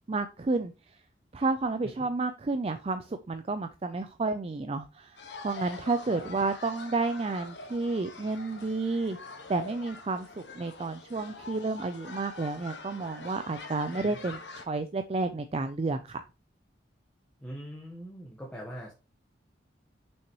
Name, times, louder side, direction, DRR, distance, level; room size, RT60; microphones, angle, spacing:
voice 1, 0.1-0.7 1.3-5.2 5.4-9.2 9.5-16.2, right 3 dB, 35° right, 9 dB, 0.4 m, -31 dB
sound 1, 5.2-14.6, left 3 dB, 65° left, 1.4 m, -44 dB
voice 2, 17.4-18.9, equal, 5° left, -3 dB, 1.3 m, -42 dB
6.3 x 5.9 x 3.0 m, 0.29 s
head